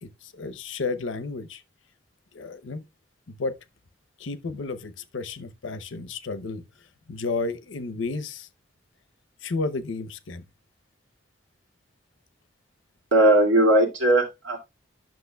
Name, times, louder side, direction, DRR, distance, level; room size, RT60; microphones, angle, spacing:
voice 1, 0.0-1.6 2.3-2.8 3.3-3.6 4.2-6.6 7.1-8.5 9.4-10.4, left 3 dB, 90° left, 0.7 m, -32 dB
voice 2, 13.1-14.6, right 1 dB, 90° right, 2.2 m, -18 dB
10.5 x 6.1 x 2.2 m
head